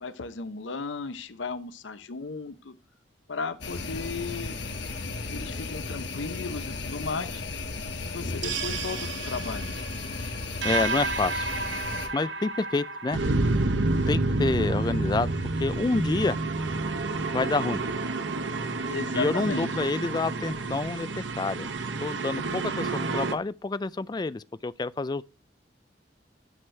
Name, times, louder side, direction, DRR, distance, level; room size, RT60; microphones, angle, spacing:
voice 1, 0.0-2.7 3.3-4.5 5.3-7.4 8.0-9.7 18.9-19.7, left 4 dB, 90° left, 0.7 m, -35 dB
sound 1, 3.6-12.1, left 3 dB, 65° left, 1.4 m, -35 dB
sound 2, 8.4-23.4, right 3 dB, 80° right, 0.9 m, -29 dB
voice 2, 10.6-11.5 12.1-13.2 14.1-15.3 15.6-16.4 17.3-17.8 19.1-21.7 22.0-25.2, left 3 dB, 20° left, 0.3 m, -28 dB
10.5 x 6.3 x 3.3 m
head